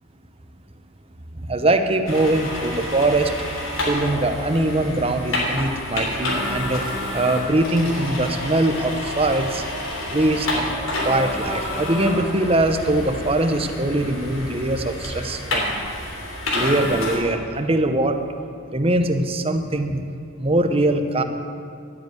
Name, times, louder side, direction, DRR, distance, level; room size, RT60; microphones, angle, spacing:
voice 1, 1.5-3.3 3.9-6.8 7.1-9.6 10.1-10.7 11.0-15.8 16.5-18.2 18.7-20.0 20.4-21.2, right 1 dB, 25° right, 7 dB, 0.8 m, -22 dB
sound 1, 2.1-17.2, left 1 dB, 75° left, 3.2 m, -29 dB
12.5 x 9.3 x 9.2 m, 2.4 s
head